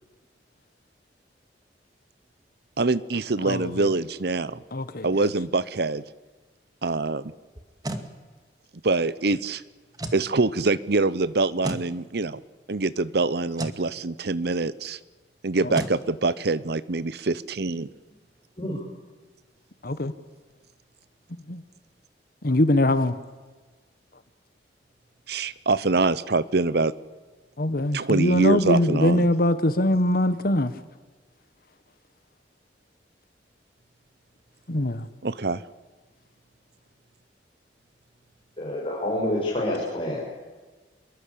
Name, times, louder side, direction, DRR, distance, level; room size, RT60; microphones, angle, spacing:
voice 1, 2.8-4.6 5.0-6.0 6.8-7.3 8.8-9.6 10.1-12.4 12.7-15.0 15.4-17.9 25.3-26.9 27.9-29.3 35.2-35.6, right 3 dB, 65° right, 18 dB, 0.9 m, -24 dB
voice 2, 4.7-5.1 19.8-20.1 21.5-21.6 22.4-23.1 27.6-30.7 34.7-35.0, left 1 dB, 55° left, 12 dB, 1.4 m, -22 dB
sound 1, 7.6-8.1 9.9-10.3 11.6-11.9 13.5-13.8 15.7-16.0, right 1 dB, 20° right, 2.2 m, -32 dB
voice 3, 38.6-40.2, left 1 dB, 30° left, -4 dB, 6.8 m, -27 dB
27.0 x 22.5 x 8.7 m, 1.3 s
head